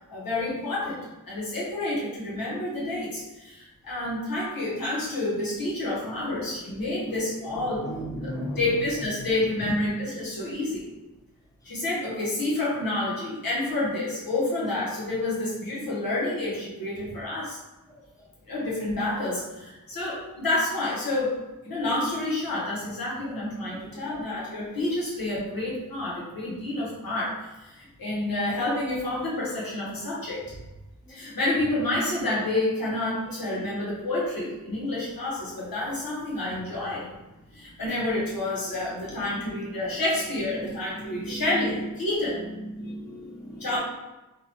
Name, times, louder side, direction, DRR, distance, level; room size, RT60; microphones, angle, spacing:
voice 1, 0.1-7.8 8.2-10.9 11.6-17.6 18.5-21.4 21.6-30.4 31.1-37.1 37.5-42.4 43.6-43.8, left 2 dB, 90° left, -5 dB, 0.9 m, -29 dB
voice 2, 7.8-8.6 23.7-24.0 41.0-41.7 42.6-43.7, equal, 10° left, -2 dB, 0.6 m, -36 dB
2.8 x 2.0 x 2.9 m, 1.0 s
wide cardioid pair, 45°, 34 cm